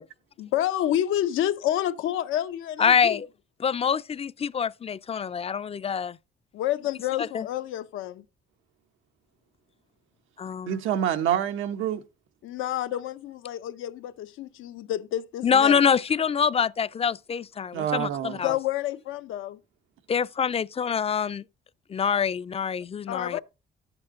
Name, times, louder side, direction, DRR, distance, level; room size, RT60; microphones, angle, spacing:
voice 1, 0.4-3.2 6.5-8.2 12.4-15.8 18.4-19.6 23.1-23.4, left 12 dB, 90° left, 0.8 m, -29 dB
voice 2, 2.8-3.3 3.6-6.2 7.3-7.5 10.4-10.8 15.4-18.5 20.1-21.4 21.9-23.4, left 7 dB, 30° left, 0.4 m, -25 dB
voice 3, 10.7-12.0 17.7-18.4, right 10 dB, 90° right, 1.0 m, -27 dB
11.0 x 8.0 x 3.7 m
cardioid pair, 90°, 20 cm